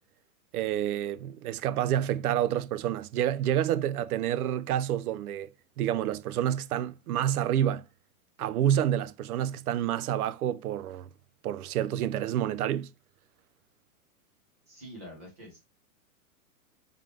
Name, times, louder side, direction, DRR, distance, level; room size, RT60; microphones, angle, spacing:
voice 1, 0.5-5.5 5.8-7.8 8.4-11.1 11.4-12.9, right 11 dB, 85° right, 0.6 m, -28 dB
voice 2, 14.7-15.6, equal, 10° right, 0.3 m, -46 dB
3.6 x 3.2 x 3.6 m
supercardioid pair, 165°, 43 cm